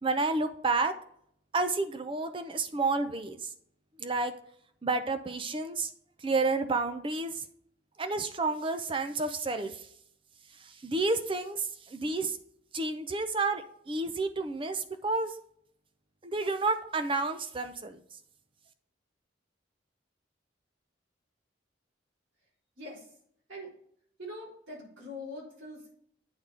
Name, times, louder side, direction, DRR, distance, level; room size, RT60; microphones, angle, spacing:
voice 1, 0.0-0.9 1.5-3.5 4.0-4.3 4.8-5.9 6.2-7.4 8.0-9.9 10.6-12.4 12.7-15.3 16.2-18.0, right 3 dB, 25° right, 9 dB, 0.6 m, -30 dB
voice 2, 24.2-26.0, left 1 dB, 90° right, -4 dB, 3.5 m, -43 dB
8.8 x 4.1 x 4.8 m, 0.67 s
head